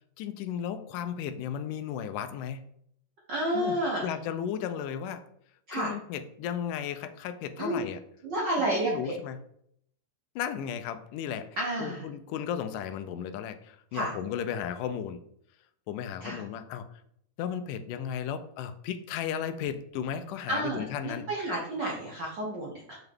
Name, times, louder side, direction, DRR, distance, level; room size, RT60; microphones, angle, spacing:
voice 1, 0.2-2.7 3.5-5.2 5.7-8.0 8.3-9.4 10.4-11.5 11.8-15.2 15.9-16.9 17.4-21.3, left 8 dB, 85° left, 10 dB, 2.2 m, -35 dB
voice 2, 3.3-4.1 5.7-5.9 7.6-7.9 8.2-9.1 11.6-12.1 13.9-14.1 16.2-16.4 20.5-23.0, right 1 dB, 70° right, -3 dB, 1.0 m, -30 dB
6.6 x 5.9 x 3.5 m, 0.70 s
omnidirectional pair, 3.7 m